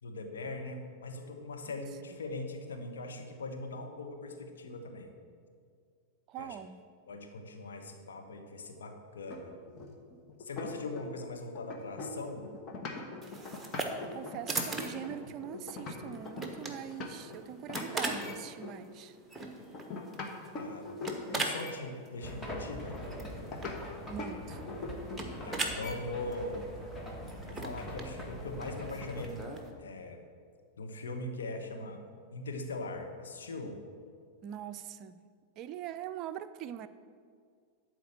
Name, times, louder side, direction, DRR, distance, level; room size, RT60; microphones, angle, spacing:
voice 1, 0.0-5.1 6.4-6.6 7.1-9.6 10.4-12.4 20.6-20.9 21.3-23.0 25.4-26.6 27.5-29.4 29.8-30.2 30.8-32.0 32.3-33.8, left 2 dB, 65° left, 3 dB, 1.2 m, -41 dB
voice 2, 6.3-6.8 14.0-19.2 24.1-24.7 34.4-35.2 35.6-36.9, right 10 dB, 35° right, 12 dB, 0.5 m, -42 dB
sound 1, 9.3-11.3 11.5-17.4 17.7-18.8 19.7-21.5 23.5-23.8 24.2-24.4 24.7-25.3, left 3 dB, 35° left, 1.4 m, -42 dB
sound 2, 13.2-29.7, right 2 dB, 5° right, 1.2 m, -41 dB
sound 3, 22.2-29.4, equal, 15° left, 1.5 m, -43 dB
12.0 x 4.6 x 7.4 m, 2.1 s
figure-of-eight pair, 90°, 0 cm